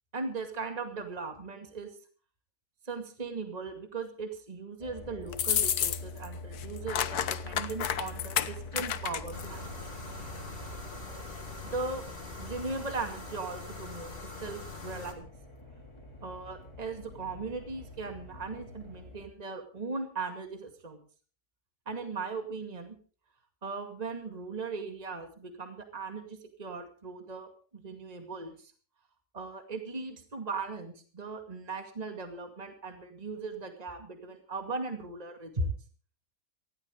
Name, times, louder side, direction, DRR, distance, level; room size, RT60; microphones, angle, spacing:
voice 1, 0.1-2.0 2.8-9.6 11.6-12.0 12.4-14.1 14.4-15.3 16.2-21.0 21.9-23.0 23.6-28.7 29.3-35.7, right 3 dB, 25° right, 5 dB, 2.2 m, -38 dB
sound 1, 4.8-19.3, left 1 dB, 15° left, 2.7 m, -46 dB
sound 2, 5.3-6.3 6.5-9.5, left 9 dB, 70° left, 1.4 m, -30 dB
sound 3, 9.3-15.1, left 4 dB, 35° left, 3.0 m, -43 dB
19.0 x 15.5 x 3.7 m, 0.40 s
omnidirectional pair, 1.7 m